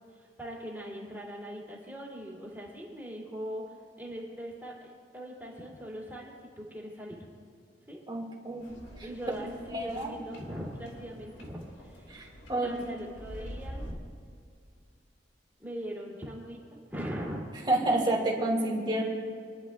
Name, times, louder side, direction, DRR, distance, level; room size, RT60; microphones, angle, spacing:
voice 1, 0.2-3.6 4.0-4.9 5.1-7.3 7.9-8.0 9.0-12.1 12.5-14.0 15.6-17.4, equal, 10° right, -5 dB, 2.8 m, -40 dB
voice 2, 8.1-8.7 9.0-9.1 9.7-10.1 12.1-12.7 17.7-19.0, right 1 dB, 25° right, -2 dB, 2.3 m, -29 dB
sound 1, 8.6-13.9, equal, 70° left, 2.2 m, -46 dB
30.0 x 11.0 x 2.4 m, 2.3 s
head